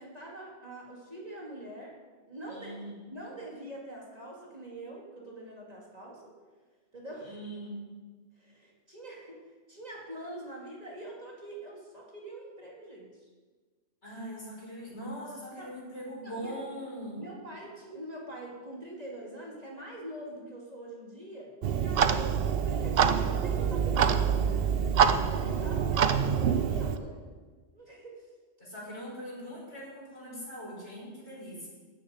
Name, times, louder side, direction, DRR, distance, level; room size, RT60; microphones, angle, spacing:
voice 1, 0.0-2.0 2.3-2.8 3.1-6.4 6.9-7.4 8.3-9.4 9.7-13.3 15.6-15.7 16.2-16.5 17.2-24.4 24.9-27.2 27.7-28.3, right 1 dB, 35° right, -3 dB, 2.6 m, -44 dB
voice 2, 2.5-2.9 7.2-7.9 14.0-17.2 28.6-31.7, equal, 80° left, -6 dB, 5.7 m, -41 dB
Clock, 21.6-27.0, right 7 dB, 60° right, 0.8 m, -26 dB
16.5 x 9.3 x 5.1 m, 1.4 s
omnidirectional pair, 1.1 m